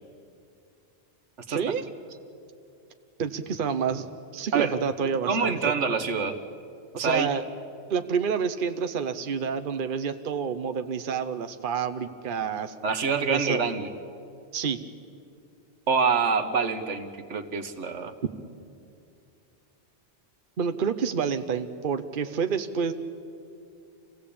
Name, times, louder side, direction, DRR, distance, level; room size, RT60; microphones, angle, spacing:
voice 1, 1.5-1.8 3.2-4.1 4.3-5.7 7.0-7.4 7.9-12.7 13.3-13.6 14.5-14.8 20.6-22.9, right 6 dB, 50° right, 8 dB, 1.0 m, -28 dB
voice 2, 5.2-6.4 6.9-7.3 12.8-13.9 15.9-18.1, right 5 dB, 90° right, 8 dB, 1.6 m, -26 dB
26.5 x 16.5 x 8.6 m, 2.4 s
omnidirectional pair, 1.2 m